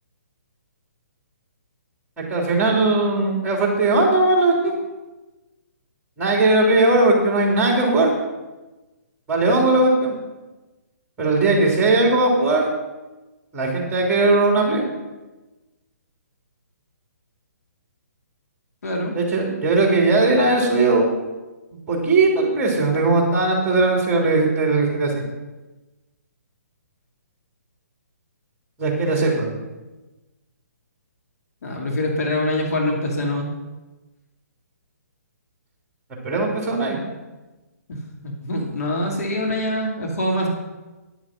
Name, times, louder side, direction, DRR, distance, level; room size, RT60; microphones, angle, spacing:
voice 1, 2.2-4.7 6.2-8.1 9.3-10.1 11.2-12.7 13.5-14.8 19.1-21.1 21.9-25.2 28.8-29.5 36.2-37.0, right 2 dB, 15° right, 0 dB, 3.4 m, -18 dB
voice 2, 18.8-19.1 31.6-33.5 37.9-40.5, left 1 dB, 65° left, 0 dB, 2.3 m, -24 dB
10.5 x 7.3 x 6.1 m, 1.2 s
hypercardioid pair, 140°, 9 cm